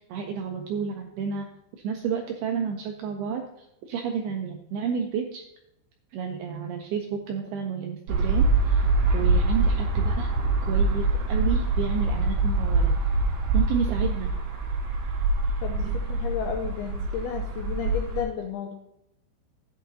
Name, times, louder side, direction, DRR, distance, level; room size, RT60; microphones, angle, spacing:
voice 1, 0.0-1.5 1.8-5.4 6.1-8.8 9.1-10.3 10.7-13.0 13.5-14.3 15.8-16.0, right 6 dB, 85° right, 3 dB, 2.2 m, -31 dB
sound 1, 8.1-18.2, right 3 dB, 65° right, 3.1 m, -24 dB
voice 2, 15.6-18.7, left 8 dB, 85° left, 3 dB, 2.2 m, -32 dB
12.5 x 8.5 x 2.7 m, 0.83 s
omnidirectional pair, 5.3 m